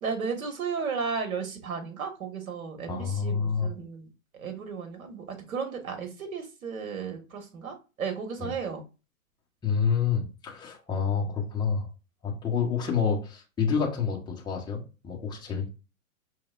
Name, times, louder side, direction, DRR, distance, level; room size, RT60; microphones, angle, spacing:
voice 1, 0.0-4.1 4.3-8.8, right 5 dB, 75° right, 5 dB, 1.6 m, -34 dB
voice 2, 2.9-3.7 8.4-8.5 9.6-11.9 12.2-15.7, left 6 dB, 10° left, -1 dB, 0.9 m, -28 dB
5.3 x 3.2 x 2.4 m, 0.30 s
hypercardioid pair, 130°, 43 cm